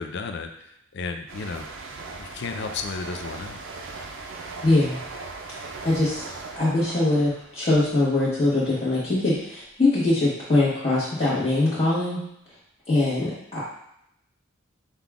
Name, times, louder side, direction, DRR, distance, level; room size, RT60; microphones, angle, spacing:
voice 1, 0.0-1.7 2.0-3.6, left 4 dB, 60° left, 6 dB, 0.4 m, -33 dB
sound 1, 1.3-8.7 9.0-9.4, right 3 dB, 70° right, 0.5 m, -39 dB
voice 2, 4.6-5.0 5.8-6.2 6.5-12.2 12.9-13.6, left 2 dB, 30° left, -11 dB, 1.3 m, -22 dB
5.6 x 2.3 x 3.5 m, 0.76 s
head